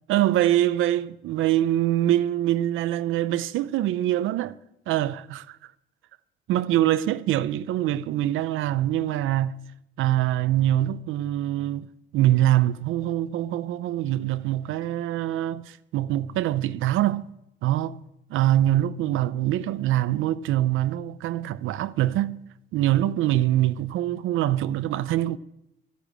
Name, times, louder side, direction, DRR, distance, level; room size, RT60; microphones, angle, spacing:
voice 1, 0.1-4.6 4.9-5.6 6.5-9.6 10.0-11.9 12.1-17.2 17.6-18.0 18.3-22.4 22.7-25.4, right 13 dB, 85° right, 0.6 m, -24 dB
12.5 x 8.3 x 8.7 m
cardioid pair, 90°, 20 cm